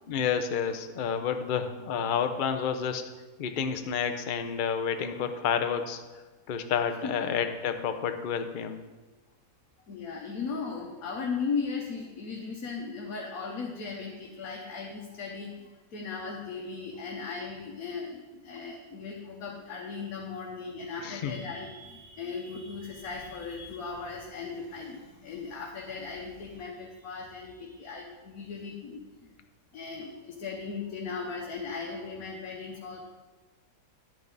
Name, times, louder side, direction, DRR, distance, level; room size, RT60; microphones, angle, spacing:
voice 1, 0.1-3.0 3.4-6.0 6.5-8.8 21.0-21.4, left 7 dB, 50° left, 8 dB, 0.6 m, -30 dB
voice 2, 9.9-29.0 29.7-33.0, left 5 dB, 70° left, -1 dB, 1.5 m, -37 dB
10.5 x 8.7 x 4.0 m, 1.2 s
omnidirectional pair, 1.6 m